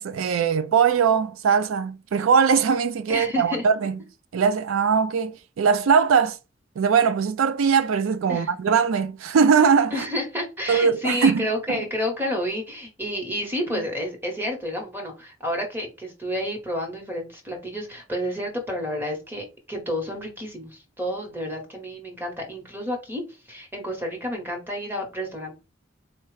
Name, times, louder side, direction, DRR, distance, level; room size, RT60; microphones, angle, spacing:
voice 1, 0.0-4.0 4.3-6.4 6.8-10.1 10.7-11.8, right 6 dB, 90° right, 0.4 m, -21 dB
voice 2, 3.1-3.6 8.3-8.5 9.9-25.5, equal, 10° right, 1.1 m, -30 dB
4.2 x 2.3 x 3.1 m
head